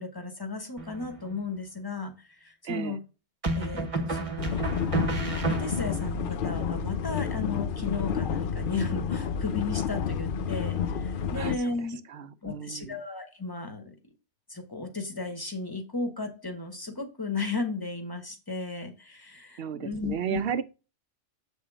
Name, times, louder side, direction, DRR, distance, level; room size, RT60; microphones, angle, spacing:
voice 1, 0.0-2.1 2.4-3.0 3.5-4.5 4.9-5.1 5.5-12.0 12.4-13.8 14.5-20.4, left 3 dB, 20° left, 1.4 m, -34 dB
sound 1, 0.8-1.4 3.4-6.1, right 2 dB, 30° right, 1.1 m, -31 dB
voice 2, 2.6-3.0 11.3-13.0 19.6-20.6, right 8 dB, 60° right, 0.8 m, -34 dB
sound 2, 4.4-11.6, left 7 dB, 60° left, 0.6 m, -30 dB
7.5 x 3.7 x 4.9 m
omnidirectional pair, 1.2 m